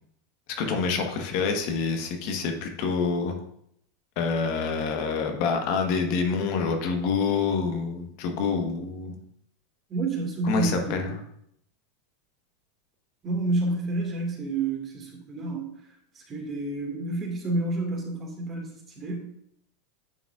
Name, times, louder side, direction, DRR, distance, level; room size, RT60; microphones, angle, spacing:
voice 1, 0.6-3.4 4.2-9.2 10.4-11.2, left 5 dB, 60° left, 4 dB, 1.2 m, -27 dB
voice 2, 9.9-11.1 13.2-15.7 16.2-19.2, right 2 dB, 30° right, 0 dB, 1.9 m, -29 dB
9.7 x 4.8 x 2.4 m, 0.71 s
hypercardioid pair, 110°, 0 cm